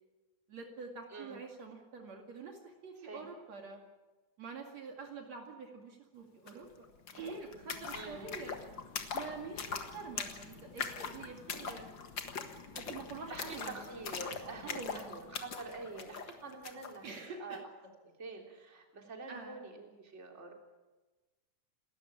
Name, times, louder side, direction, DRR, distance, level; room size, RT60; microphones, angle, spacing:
voice 1, 0.5-3.8 4.4-6.9 7.1-8.5 9.1-11.8 12.7-13.8 14.6-15.0 17.0-17.6 19.3-19.6, right 4 dB, 60° right, 2 dB, 3.5 m, -46 dB
sound 1, 6.5-6.6 6.8-17.0, left 5 dB, 45° left, 1.9 m, -42 dB
voice 2, 7.9-8.3 13.3-17.0 17.4-17.6 18.2-20.5, right 3 dB, 20° right, 2 dB, 3.4 m, -46 dB
29.0 x 13.5 x 8.6 m, 1.2 s
omnidirectional pair, 3.6 m